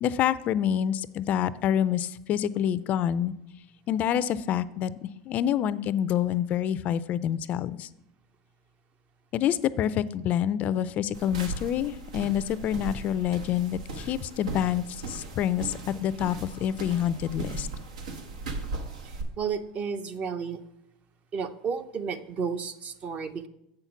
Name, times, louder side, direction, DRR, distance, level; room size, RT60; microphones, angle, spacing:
voice 1, 0.0-3.3 3.9-7.9 9.3-17.7, left 10 dB, 40° left, 16 dB, 0.3 m, -27 dB
sound 1, 11.1-19.2, right 3 dB, 90° right, 1.2 m, -38 dB
voice 2, 19.0-20.6 21.3-23.5, right 6 dB, 35° right, 11 dB, 0.7 m, -32 dB
7.7 x 5.7 x 5.9 m, 0.82 s
supercardioid pair, 115°, 4 cm